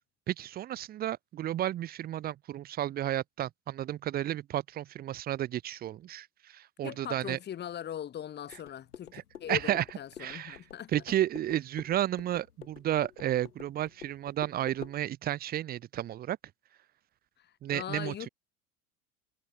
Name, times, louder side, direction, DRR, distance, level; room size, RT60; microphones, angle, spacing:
voice 1, 0.3-7.4 9.1-9.2 9.5-9.8 10.2-10.6 10.9-16.4 17.6-18.3, right 12 dB, 20° right, 0.6 m, -32 dB
voice 2, 6.8-10.9 17.4-18.3, left 10 dB, 20° left, 1.2 m, -40 dB
sound 1, 8.5-15.0, left 9 dB, 75° left, 1.5 m, -49 dB
figure-of-eight pair, 80°, 46 cm